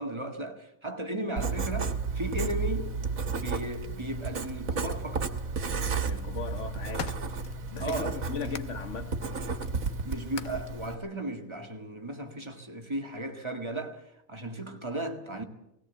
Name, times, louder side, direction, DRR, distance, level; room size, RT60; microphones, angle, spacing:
voice 1, 0.0-3.1 3.3-5.3 7.8-8.5 10.0-15.4, right 1 dB, 20° right, 1.9 m, -36 dB
Writing, 1.4-10.9, right 4 dB, 75° right, 1.7 m, -32 dB
sound 1, 4.3-4.5 5.5-5.9 6.4-8.7 9.2-10.7 11.6-11.7, left 7 dB, 90° left, 1.4 m, -43 dB
voice 2, 6.0-7.2 7.7-9.2, left 5 dB, 60° left, 1.6 m, -37 dB
19.0 x 17.0 x 8.2 m
omnidirectional pair, 1.4 m